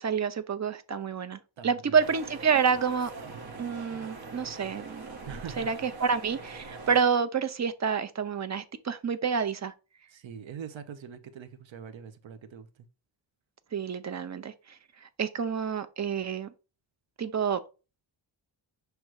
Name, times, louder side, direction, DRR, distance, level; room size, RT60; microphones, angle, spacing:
voice 1, 0.0-3.1 3.6-5.2 5.6-9.7 13.7-16.5 17.2-17.6, right 6 dB, 35° right, 0.7 m, -28 dB
voice 2, 1.6-2.0 5.2-5.8 10.1-12.9, right 8 dB, 80° right, 0.9 m, -43 dB
sound 1, 2.0-7.0, right 3 dB, 50° right, 1.3 m, -43 dB
6.2 x 3.3 x 4.7 m
wide cardioid pair, 100°, 46 cm